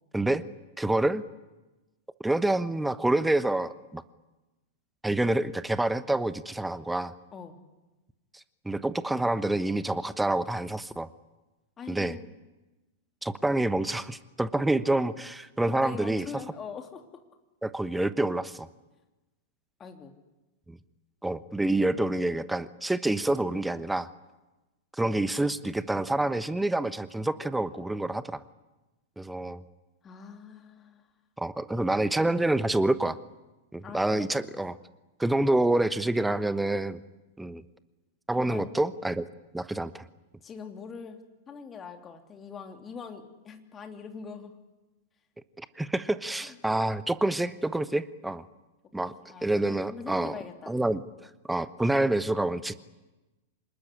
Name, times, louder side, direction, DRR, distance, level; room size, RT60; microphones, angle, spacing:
voice 1, 0.1-0.4 0.8-1.2 2.2-4.0 5.0-7.1 8.6-11.1 11.9-12.2 13.2-16.3 17.6-18.7 20.7-20.8 21.2-24.1 25.0-28.4 29.2-29.6 31.4-33.2 33.7-34.8 35.2-37.0 37.4-37.6 38.3-39.3 39.5-40.0 45.6-48.4 48.9-49.1 49.4-50.3 50.7-51.0 51.5-52.7, right 2 dB, 5° right, 15 dB, 1.0 m, -27 dB
voice 2, 11.8-12.3 15.7-17.0 19.8-20.1 30.0-31.1 33.8-34.3 38.4-38.8 40.4-41.2 41.5-44.5 46.4-46.6 49.0-50.8, left 6 dB, 20° left, 5 dB, 3.1 m, -42 dB
26.5 x 20.5 x 10.0 m, 1.1 s
figure-of-eight pair, 95°, 0 cm